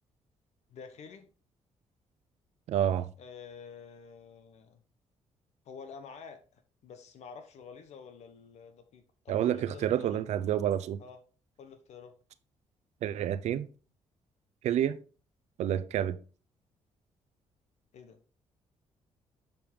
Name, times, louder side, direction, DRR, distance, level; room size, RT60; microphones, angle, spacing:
voice 1, 0.7-1.3 3.2-4.8 5.6-10.2 11.0-11.2 11.6-12.1 17.9-18.2, left 6 dB, 70° left, 1.0 m, -49 dB
voice 2, 2.7-3.1 9.3-11.0 13.0-13.7 14.6-15.0 15.6-16.2, right 10 dB, 75° right, 0.6 m, -28 dB
7.0 x 5.2 x 3.7 m
cardioid pair, 80°, 12 cm